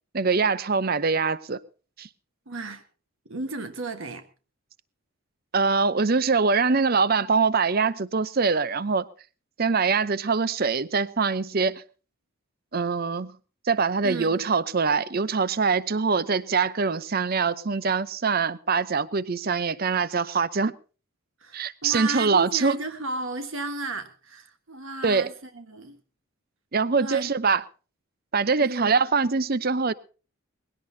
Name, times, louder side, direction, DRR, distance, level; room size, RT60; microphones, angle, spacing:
voice 1, 0.1-1.6 2.0-2.1 5.5-9.0 9.6-11.8 12.7-13.3 13.7-20.7 21.5-22.8 25.0-25.3 26.7-27.6 28.3-29.9, right 4 dB, 45° right, 0.7 m, -23 dB
voice 2, 2.5-2.8 3.2-4.3 14.0-14.4 19.7-19.8 21.4-26.0 27.0-27.3 28.6-29.0, right 2 dB, 65° right, 1.5 m, -34 dB
20.5 x 17.0 x 2.8 m
head